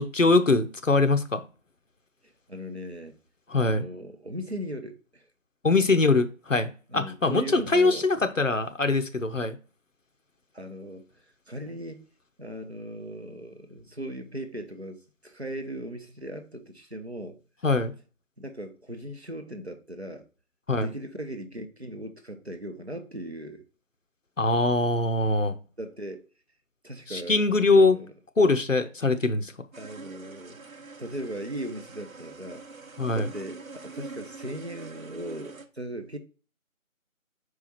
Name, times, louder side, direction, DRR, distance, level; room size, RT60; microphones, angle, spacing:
voice 1, 0.0-1.4 3.5-3.9 5.6-9.6 17.6-17.9 20.7-20.9 24.4-25.6 27.1-28.0 28.4-29.5 33.0-33.3, left 3 dB, 65° left, 0.8 m, -22 dB
voice 2, 2.2-3.2 3.5-5.3 6.9-8.1 10.5-11.1 11.5-12.1 12.4-17.4 18.4-20.2 20.8-23.6 25.8-26.2 26.8-28.1 29.8-32.6 33.1-36.2, right 1 dB, 50° right, 0.9 m, -38 dB
sound 1, 29.7-35.7, right 4 dB, 80° right, 0.9 m, -44 dB
4.8 x 4.8 x 4.2 m
figure-of-eight pair, 175°, 41 cm